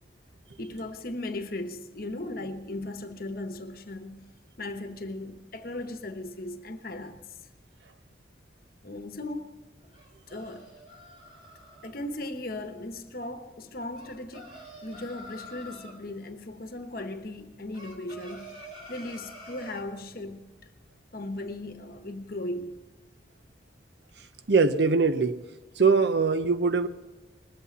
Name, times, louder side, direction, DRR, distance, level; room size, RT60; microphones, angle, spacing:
voice 1, 0.6-4.3 4.6-7.2 8.8-9.5 9.8-9.9 10.3-10.7 11.8-14.5 14.8-18.6 18.9-20.5 21.1-22.8, left 1 dB, 50° left, 1.0 m, -37 dB
sound 1, 9.9-11.9 14.0-16.0 17.7-19.9, equal, 30° right, 3.2 m, -47 dB
voice 2, 24.5-25.4 25.8-26.9, right 4 dB, 70° right, 0.7 m, -22 dB
20.0 x 8.5 x 7.1 m
head